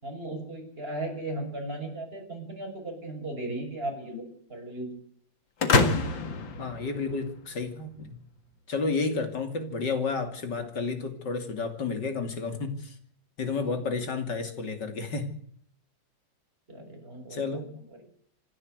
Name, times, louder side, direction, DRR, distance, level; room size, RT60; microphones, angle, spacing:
voice 1, 0.0-4.2 4.5-4.9 13.5-13.8 16.7-17.6, right 1 dB, 30° right, 2 dB, 6.6 m, -36 dB
sound 1, 5.6-7.5, left 3 dB, 80° left, 2.6 m, -26 dB
voice 2, 6.6-8.2 8.7-12.9 13.4-15.3 17.3-17.7, left 4 dB, 65° left, 7 dB, 3.4 m, -31 dB
27.0 x 12.0 x 8.0 m, 0.62 s
omnidirectional pair, 2.0 m